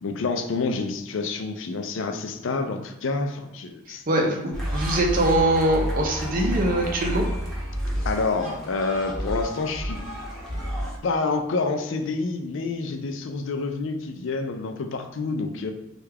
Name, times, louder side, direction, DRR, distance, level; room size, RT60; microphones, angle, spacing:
voice 1, 0.0-4.0 8.1-10.0 11.0-15.7, left 3 dB, 65° left, 6 dB, 0.4 m, -28 dB
voice 2, 4.1-7.3, right 1 dB, 45° right, 1 dB, 0.6 m, -23 dB
sound 1, 4.5-11.0, equal, ahead, 0.8 m, -30 dB
3.3 x 2.3 x 3.3 m, 0.94 s
head